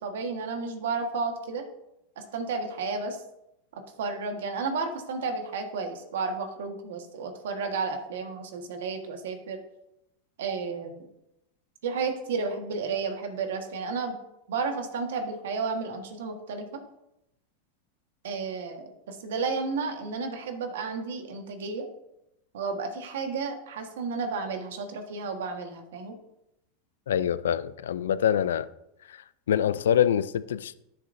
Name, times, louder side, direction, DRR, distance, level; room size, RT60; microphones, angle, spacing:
voice 1, 0.0-1.7 2.2-3.2 4.0-9.6 10.4-11.0 11.8-14.2 14.5-16.8 18.2-21.9 22.5-26.1, right 4 dB, 80° right, 1.4 m, -32 dB
voice 2, 27.1-28.7 29.1-30.7, left 9 dB, 90° left, 0.3 m, -25 dB
11.5 x 6.8 x 2.6 m
supercardioid pair, 120°, 0 cm